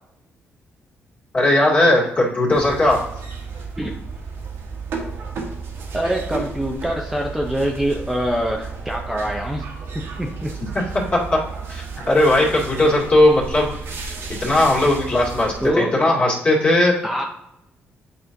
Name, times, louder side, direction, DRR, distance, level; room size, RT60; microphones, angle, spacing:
voice 1, 1.3-3.0 10.7-10.8 11.7-13.7 14.4-17.0, left 1 dB, 35° left, -4 dB, 2.1 m, -17 dB
sound 1, 2.5-15.7, right 4 dB, 70° right, 1.3 m, -33 dB
voice 2, 5.9-9.7 10.2-10.5 15.6-15.9 17.0-17.2, equal, 5° right, 0 dB, 0.6 m, -24 dB
8.7 x 4.2 x 2.6 m, 0.82 s
cardioid pair, 110°, 4 cm